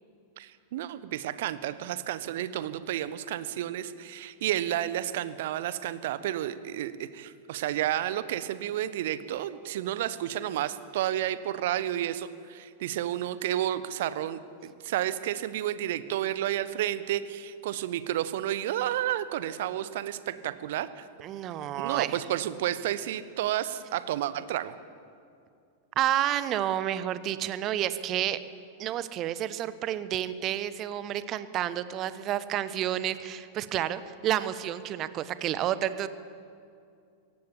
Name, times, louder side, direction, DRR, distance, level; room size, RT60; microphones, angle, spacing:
voice 1, 0.4-21.1 21.8-24.7, right 12 dB, 55° right, 14 dB, 1.1 m, -31 dB
voice 2, 21.2-22.2 26.0-28.4 28.8-36.1, right 12 dB, 35° right, 14 dB, 1.1 m, -30 dB
22.5 x 18.0 x 8.5 m, 2.4 s
figure-of-eight pair, 90°, 0 cm